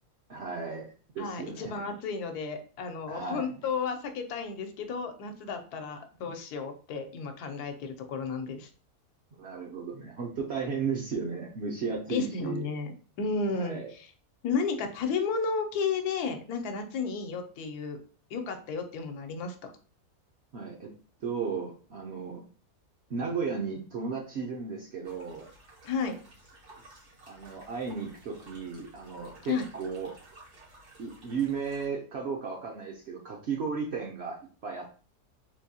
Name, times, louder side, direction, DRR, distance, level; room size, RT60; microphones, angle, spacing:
voice 1, 0.3-0.9 1.1-1.9 3.1-3.6 9.4-12.7 13.5-13.9 20.5-20.9 21.2-22.4 23.1-25.5 27.3-30.1 31.0-34.9, right 5 dB, 60° right, -1 dB, 0.7 m, -35 dB
voice 2, 1.2-8.7 12.1-14.1 14.4-18.0 18.3-19.6 25.8-26.2 29.5-29.6, left 5 dB, 85° left, 6 dB, 1.1 m, -33 dB
sound 1, 25.0-31.9, right 1 dB, 90° right, 1.8 m, -54 dB
3.6 x 2.6 x 2.7 m, 0.39 s
omnidirectional pair, 1.6 m